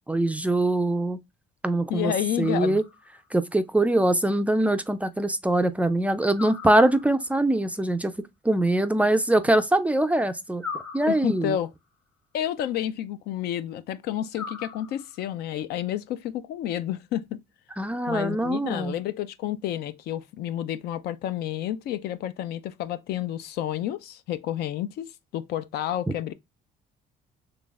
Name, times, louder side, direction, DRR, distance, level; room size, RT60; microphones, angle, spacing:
voice 1, 0.1-1.2 1.6-2.1 2.4-2.8 3.3-8.1 8.4-10.6 10.9-11.5 17.8-18.9, right 1 dB, 10° right, 0.3 m, -23 dB
voice 2, 1.9-2.8 11.1-11.7 12.3-17.4 18.1-26.3, left 11 dB, 70° left, 0.4 m, -30 dB
sound 1, 2.4-3.3 6.3-7.4 10.6-11.7 14.3-15.3, left 5 dB, 20° left, 1.0 m, -40 dB
3.9 x 3.2 x 2.3 m
cardioid pair, 110°, 17 cm